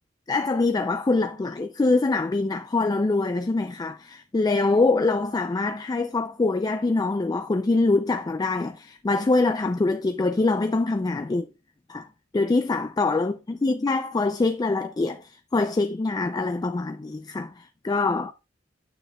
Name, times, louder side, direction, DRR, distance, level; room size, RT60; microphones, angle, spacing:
voice 1, 0.3-11.5 11.9-12.1 12.3-18.3, left 3 dB, 20° left, 0.3 m, -24 dB
9.0 x 6.4 x 2.3 m
head